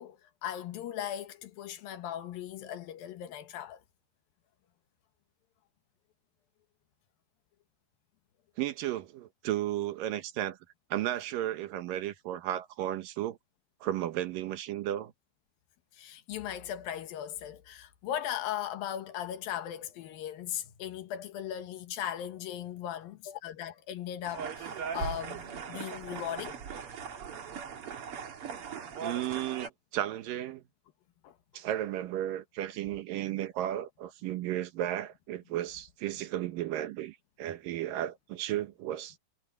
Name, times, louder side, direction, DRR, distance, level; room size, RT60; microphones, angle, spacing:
voice 1, 0.0-3.8 16.0-25.4 25.7-26.6 31.2-31.3, left 11 dB, 85° left, 3.2 m, -38 dB
voice 2, 8.6-10.6 10.9-13.4 13.8-15.1 29.0-30.6 31.5-39.2, right 13 dB, 75° right, 2.8 m, -34 dB
sound 1, 24.3-29.7, right 6 dB, 50° right, 2.2 m, -39 dB
omnidirectional pair, 4.0 m